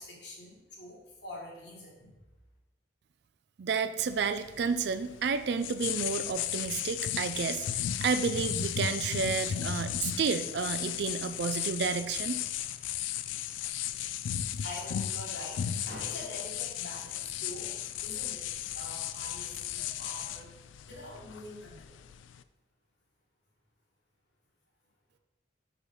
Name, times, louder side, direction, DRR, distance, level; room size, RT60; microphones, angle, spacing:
voice 1, 0.0-2.1 14.3-18.5 18.7-20.6 20.8-22.0, left 1 dB, 60° left, -3 dB, 1.9 m, -45 dB
voice 2, 3.6-12.4, right 5 dB, 60° right, 11 dB, 0.4 m, -31 dB
sound 1, 4.0-22.4, left 10 dB, 75° left, 0.3 m, -35 dB
5.0 x 4.9 x 5.4 m, 1.0 s
head